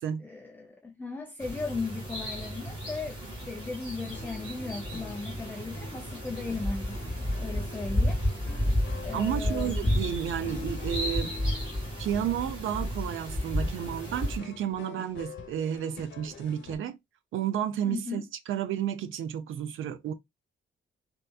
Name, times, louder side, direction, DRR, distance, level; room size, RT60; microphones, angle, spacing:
voice 1, 0.2-3.2 3.5-7.0 7.4-8.2 9.0-9.9 17.8-18.2, left 4 dB, 10° left, 0.4 m, -37 dB
sound 1, 1.4-14.4, equal, 25° right, 2.0 m, -32 dB
sound 2, 4.1-16.8, left 4 dB, 65° left, 0.8 m, -46 dB
voice 2, 9.1-11.3 12.0-17.0 17.3-20.1, right 9 dB, 85° right, 0.5 m, -32 dB
3.3 x 2.9 x 2.2 m
wide cardioid pair, 170°, 20 cm